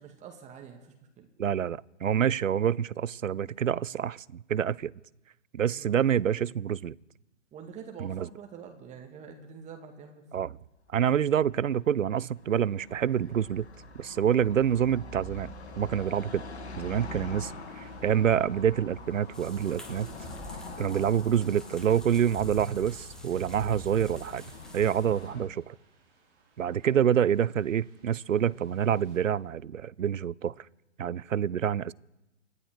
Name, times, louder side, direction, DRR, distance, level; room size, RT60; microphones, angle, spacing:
voice 1, 0.0-1.3 5.8-5.9 7.5-10.2 17.1-17.3 25.3-25.4, right 6 dB, 20° right, 2.0 m, -46 dB
voice 2, 1.4-4.9 5.5-6.9 8.0-8.3 10.3-10.6 10.9-13.7 14.0-16.4 16.8-20.1 20.8-24.4 24.7-25.7 26.6-30.5 31.0-31.9, right 9 dB, 90° right, 0.5 m, -27 dB
Car passing by / Traffic noise roadway noise, 10.8-25.5, left 2 dB, 60° left, 2.4 m, -45 dB
sound 1, 15.2-29.2, right 4 dB, 50° right, 5.9 m, -63 dB
sound 2, 19.3-25.3, equal, ahead, 1.5 m, -47 dB
27.0 x 10.5 x 4.9 m
figure-of-eight pair, 120°, 38 cm